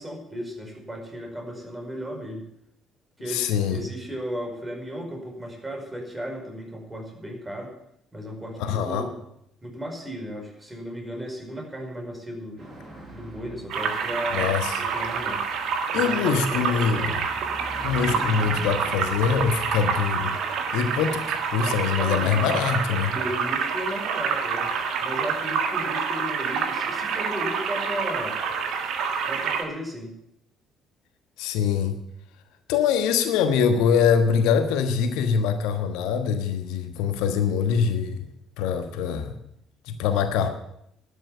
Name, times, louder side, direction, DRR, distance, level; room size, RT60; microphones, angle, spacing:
voice 1, 0.0-2.5 3.2-7.7 8.1-9.1 9.6-12.6 13.1-14.5 14.9-15.4 15.9-17.1 22.0-22.5 23.0-24.7 25.0-28.4 29.2-30.2, equal, 15° right, 1 dB, 5.0 m, -35 dB
voice 2, 3.3-3.8 8.6-9.1 14.3-14.8 15.9-17.2 17.8-20.3 20.7-23.1 31.4-32.0 32.7-38.3 38.6-39.3 39.9-40.5, left 7 dB, 70° left, 8 dB, 1.2 m, -24 dB
sound 1, 12.6-23.5, right 1 dB, 40° right, 5.7 m, -43 dB
sound 2, 13.7-29.6, right 6 dB, 60° right, 1.7 m, -27 dB
12.0 x 7.3 x 9.7 m, 0.76 s
figure-of-eight pair, 50°, 0 cm